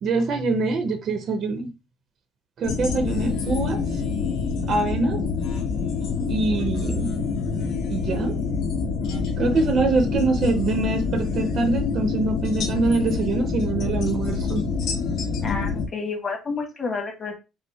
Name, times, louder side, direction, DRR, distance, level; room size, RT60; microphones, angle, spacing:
voice 1, 0.0-1.7 2.6-3.8 4.7-5.2 6.3-7.1 7.9-8.4 9.4-14.6, right 3 dB, 45° right, 0.7 m, -24 dB
sound 1, 2.6-15.9, left 5 dB, 65° left, 1.2 m, -26 dB
voice 2, 15.4-17.3, left 4 dB, 25° left, 1.5 m, -29 dB
5.6 x 2.1 x 4.2 m
cardioid pair, 145°, 0 cm